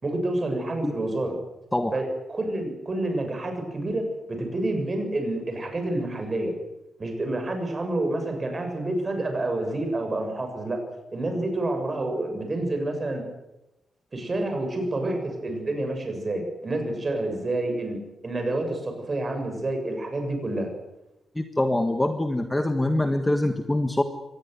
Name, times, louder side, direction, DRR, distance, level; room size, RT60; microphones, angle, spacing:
voice 1, 0.0-1.3 1.9-6.5 7.0-10.8 11.1-13.2 14.1-18.0 18.2-20.7, right 2 dB, 25° right, 5 dB, 7.3 m, -28 dB
voice 2, 21.3-24.0, left 1 dB, 10° left, 6 dB, 1.5 m, -24 dB
24.0 x 19.5 x 9.7 m, 0.93 s
wide cardioid pair, 155°, 0 cm